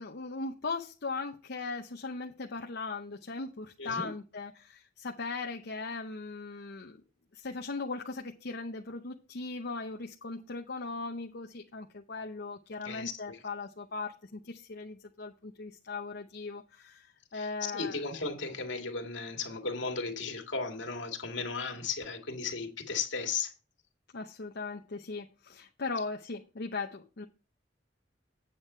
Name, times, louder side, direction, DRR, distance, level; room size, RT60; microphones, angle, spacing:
voice 1, 0.0-7.0 7.3-18.0 24.1-27.3, left 3 dB, 60° left, 0.8 m, -39 dB
voice 2, 12.8-13.4 17.3-23.5, left 4 dB, 80° left, 2.2 m, -35 dB
8.7 x 7.3 x 4.4 m
head